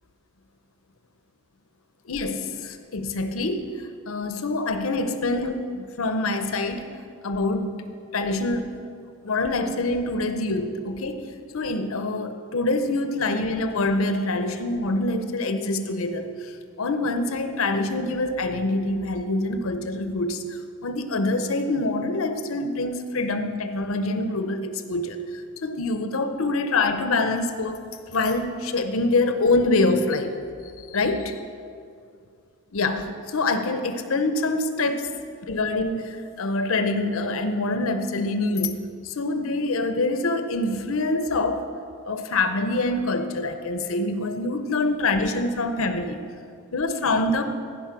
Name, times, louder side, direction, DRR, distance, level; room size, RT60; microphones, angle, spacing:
voice 1, 2.1-3.7 4.1-6.9 7.2-7.8 8.1-8.7 9.2-11.2 11.5-16.3 16.8-20.4 20.8-25.2 25.6-27.8 28.1-30.3 30.9-31.4 32.7-35.1 35.5-41.6 42.0-46.2 46.7-47.4, left 2 dB, 75° left, 8 dB, 0.7 m, -25 dB
15.0 x 5.2 x 6.0 m, 2.3 s
head